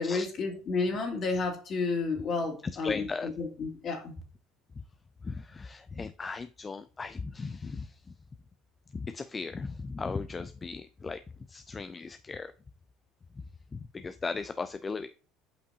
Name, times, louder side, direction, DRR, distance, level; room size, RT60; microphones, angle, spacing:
voice 1, 0.0-4.2, left 4 dB, 45° left, 2.5 m, -31 dB
voice 2, 2.6-3.3 5.2-7.9 8.9-11.2 11.5-12.5 13.7-15.1, left 4 dB, 25° left, 0.4 m, -37 dB
8.2 x 5.1 x 2.8 m
supercardioid pair, 85°, 0 cm